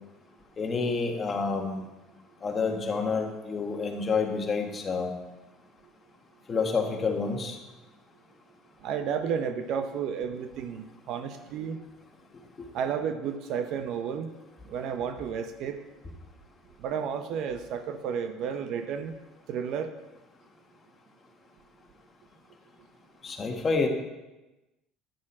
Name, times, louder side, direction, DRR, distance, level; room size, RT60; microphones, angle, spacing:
voice 1, 0.6-1.8 2.4-5.1 6.5-7.6 23.2-23.9, left 4 dB, 30° left, 2 dB, 1.4 m, -28 dB
voice 2, 8.8-11.8 12.7-14.3 14.6-15.8 16.8-19.1 19.5-19.9, right 7 dB, 60° right, 8 dB, 0.7 m, -32 dB
10.5 x 6.0 x 4.3 m, 1.1 s
supercardioid pair, 110°, 0 cm